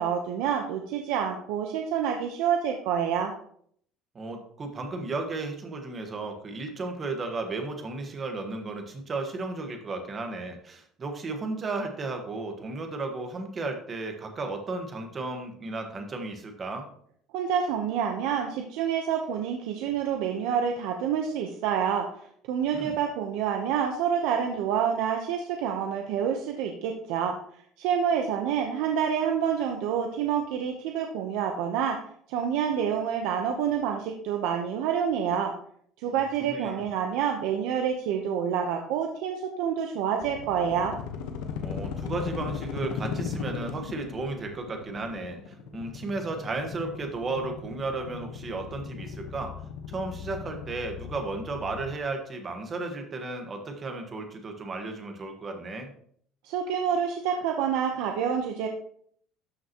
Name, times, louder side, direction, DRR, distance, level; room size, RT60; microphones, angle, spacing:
voice 1, 0.0-3.3 17.3-22.1 22.5-27.4 27.8-32.0 32.3-35.5 36.0-40.9 56.4-58.7, right 8 dB, 80° right, 3 dB, 0.9 m, -27 dB
voice 2, 4.1-16.9 22.7-23.0 36.1-36.2 36.4-36.8 41.6-49.5 49.9-55.9, right 3 dB, 25° right, 4 dB, 1.4 m, -34 dB
sound 1, 40.2-52.0, left 6 dB, 80° left, 1.1 m, -37 dB
12.5 x 5.9 x 3.0 m, 0.63 s
cardioid pair, 155°, 0 cm